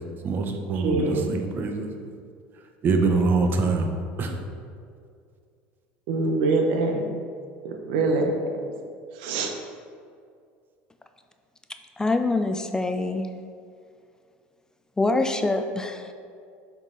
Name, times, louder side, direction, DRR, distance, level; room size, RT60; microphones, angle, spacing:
voice 1, 0.2-1.9 2.8-3.9 4.2-4.4, right 4 dB, 40° right, 4 dB, 0.8 m, -24 dB
voice 2, 0.7-1.2 6.1-7.1 7.6-8.4 9.2-9.5, right 3 dB, 75° right, 3 dB, 0.8 m, -24 dB
voice 3, 12.0-13.3 15.0-16.0, left 2 dB, 10° left, 7 dB, 0.3 m, -24 dB
7.2 x 3.9 x 3.9 m, 2.3 s
supercardioid pair, 105°, 5 cm